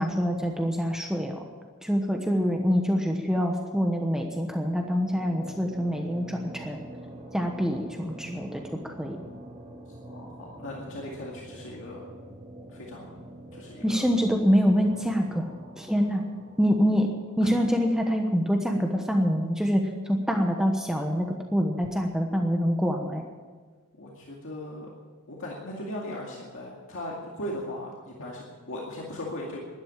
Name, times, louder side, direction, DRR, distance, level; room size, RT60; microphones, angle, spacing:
voice 1, 0.0-1.4 1.8-6.8 7.3-9.2 13.8-15.5 15.8-16.2 16.6-17.1 17.4-21.2 21.5-23.3, equal, 5° right, 2 dB, 1.1 m, -25 dB
sound 1, 4.8-17.9, right 1 dB, 35° right, 2.8 m, -46 dB
voice 2, 10.0-12.0 12.7-13.1 13.5-14.0 17.4-17.5 24.0-24.9 25.3-29.6, left 1 dB, 60° left, -3 dB, 2.2 m, -38 dB
12.5 x 11.5 x 8.9 m, 1.5 s
head